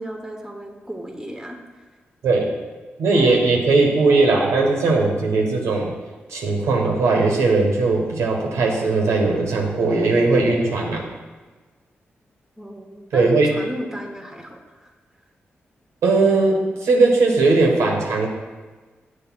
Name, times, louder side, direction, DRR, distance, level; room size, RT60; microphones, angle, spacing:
voice 1, 0.0-1.6 12.6-14.9, equal, 10° right, 2 dB, 1.2 m, -33 dB
voice 2, 3.0-5.9 6.3-11.1 13.1-13.5 16.0-18.3, right 3 dB, 85° right, 0 dB, 1.1 m, -18 dB
7.6 x 3.2 x 6.1 m, 1.3 s
supercardioid pair, 40°, 5 cm